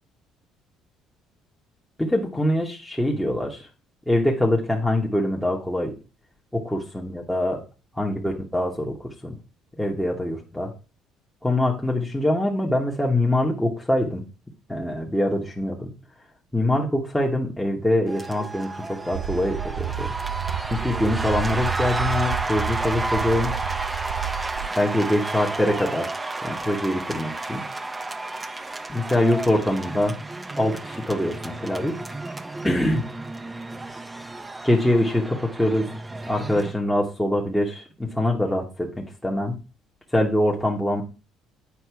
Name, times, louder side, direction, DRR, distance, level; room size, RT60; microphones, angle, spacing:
voice 1, 2.0-3.7 4.1-5.9 6.5-7.6 7.9-9.3 9.8-10.7 11.4-14.2 14.7-15.9 16.5-20.1 20.6-23.5 24.8-27.6 28.9-30.2 30.6-32.0 32.6-33.0 34.6-35.9 36.2-39.5 40.1-41.0, left 1 dB, 5° left, -1 dB, 1.1 m, -24 dB
sound 1, 18.1-36.7, right 2 dB, 10° right, 0.6 m, -32 dB
sound 2, 19.1-24.7, right 11 dB, 80° right, 0.4 m, -31 dB
8.5 x 5.3 x 4.7 m, 0.33 s
cardioid pair, 145°, 0 cm